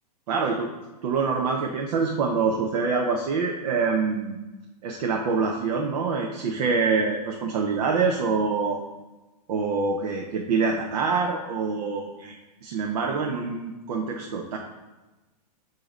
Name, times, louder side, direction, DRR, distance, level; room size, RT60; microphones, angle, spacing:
voice 1, 0.3-0.7 1.0-4.4 4.8-8.8 9.5-14.6, right 4 dB, 60° right, 1 dB, 0.8 m, -25 dB
7.7 x 2.9 x 5.0 m, 1.1 s
hypercardioid pair, 135°, 21 cm